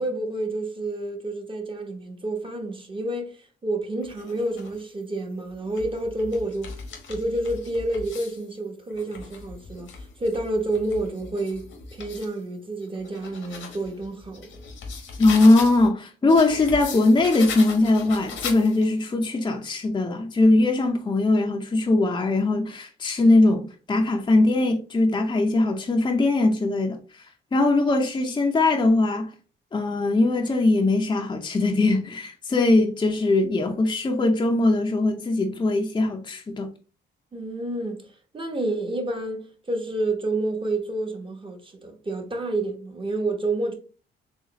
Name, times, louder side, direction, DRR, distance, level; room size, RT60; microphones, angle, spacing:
voice 1, 0.0-3.4 3.6-6.7 7.1-14.6 37.3-38.1 38.3-43.7, right 2 dB, 25° right, 1.1 m, -29 dB
sound 1, 4.0-4.8 5.5-8.4 8.9-12.3 12.8-15.9 16.3-19.0, left 5 dB, 75° left, 1.1 m, -38 dB
voice 2, 15.2-27.0 27.5-29.3 29.7-36.7, left 2 dB, 20° left, 0.6 m, -21 dB
4.0 x 3.1 x 3.0 m
cardioid pair, 90°, 20 cm